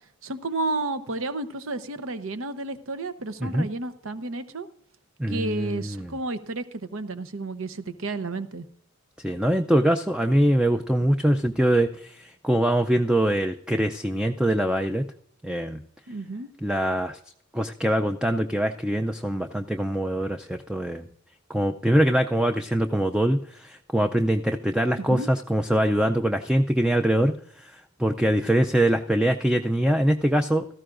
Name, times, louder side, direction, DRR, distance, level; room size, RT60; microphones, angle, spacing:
voice 1, 0.2-4.7 5.3-8.6 16.1-16.5 25.0-25.3, right 2 dB, 65° right, 11 dB, 0.9 m, -31 dB
voice 2, 5.2-6.1 9.2-15.0 15.4-15.8 16.6-17.2 17.5-21.1 21.5-30.7, right 1 dB, 5° right, 6 dB, 0.4 m, -23 dB
17.0 x 14.0 x 2.5 m, 0.68 s
head